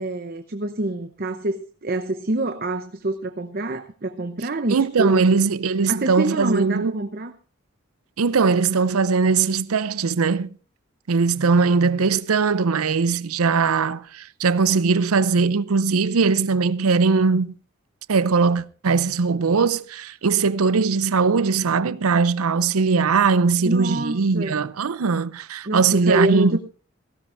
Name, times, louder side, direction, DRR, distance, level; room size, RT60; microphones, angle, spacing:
voice 1, 0.0-5.3 5.9-7.3 23.6-24.6 25.6-26.6, right 2 dB, 45° right, 0.8 m, -26 dB
voice 2, 4.7-6.9 8.2-10.5 11.1-17.5 18.1-26.6, right 4 dB, 90° right, 0.6 m, -20 dB
18.0 x 16.0 x 2.6 m
head